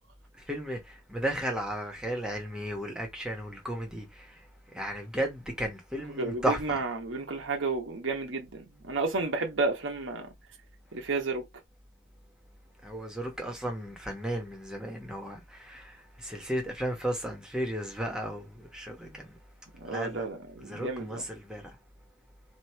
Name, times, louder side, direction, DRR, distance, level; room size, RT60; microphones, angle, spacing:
voice 1, 0.5-4.4 4.7-6.8 12.8-19.4 19.9-20.3 20.6-21.7, right 1 dB, 5° right, 1.2 m, -34 dB
voice 2, 6.2-10.3 10.9-11.5 19.0-19.2 19.7-21.3, right 3 dB, 75° right, 1.1 m, -32 dB
3.0 x 3.0 x 4.4 m
head